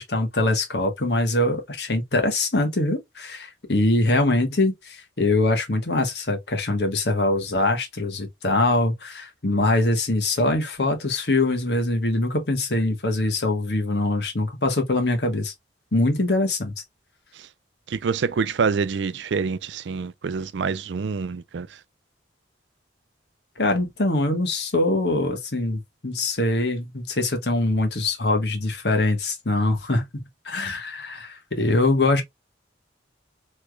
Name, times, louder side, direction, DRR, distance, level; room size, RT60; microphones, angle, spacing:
voice 1, 0.0-15.5 15.9-16.7 23.6-32.2, left 2 dB, 65° left, 1.2 m, -23 dB
voice 2, 17.9-21.7, right 5 dB, 80° right, 0.4 m, -26 dB
3.3 x 3.1 x 2.3 m
head